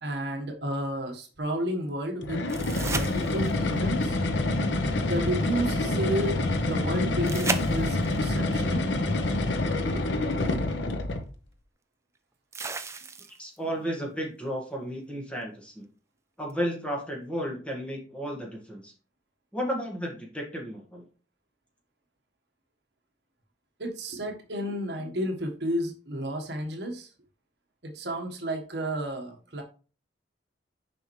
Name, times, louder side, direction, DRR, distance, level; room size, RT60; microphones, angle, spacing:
voice 1, 0.0-2.4 2.8-4.2 5.0-8.9 9.8-10.3 23.8-27.1 27.8-29.6, right 1 dB, 65° right, 3 dB, 1.3 m, -32 dB
sound 1, 2.2-11.3, left 2 dB, 75° left, 0.8 m, -27 dB
sound 2, 2.5-3.8 7.3-8.2 10.1-10.2 12.5-13.6 16.5-16.6, right 4 dB, 15° right, 0.5 m, -34 dB
voice 2, 13.4-15.9 16.4-18.9 19.5-21.0, equal, 5° left, -1 dB, 1.7 m, -33 dB
6.7 x 5.3 x 3.1 m, 0.36 s
head